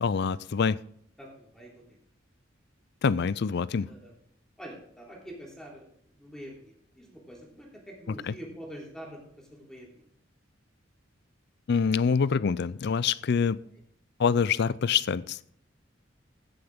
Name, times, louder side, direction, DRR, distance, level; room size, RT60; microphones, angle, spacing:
voice 1, 0.0-0.8 3.0-3.9 8.1-8.3 11.7-13.6 14.2-15.6, left 6 dB, 60° left, 19 dB, 0.4 m, -26 dB
voice 2, 1.2-1.7 3.9-4.1 4.6-5.9 6.2-10.0, equal, 5° left, -2 dB, 3.3 m, -45 dB
15.5 x 7.7 x 3.7 m, 0.66 s
head